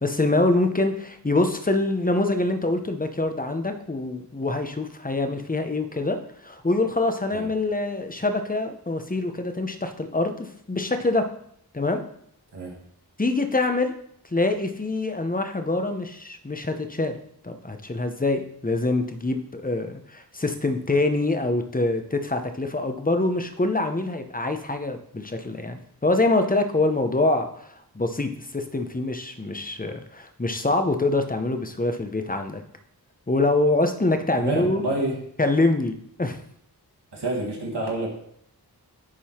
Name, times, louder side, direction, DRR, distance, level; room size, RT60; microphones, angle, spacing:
voice 1, 0.0-11.3 11.7-12.0 13.2-13.9 14.3-17.2 17.4-32.6 33.3-34.9 35.4-35.9 36.2-36.4, left 2 dB, 20° left, 7 dB, 0.8 m, -25 dB
voice 2, 34.4-35.2 37.1-38.1, right 2 dB, 90° right, -1 dB, 1.5 m, -27 dB
9.7 x 3.8 x 4.4 m, 0.69 s
wide cardioid pair, 45°, 40 cm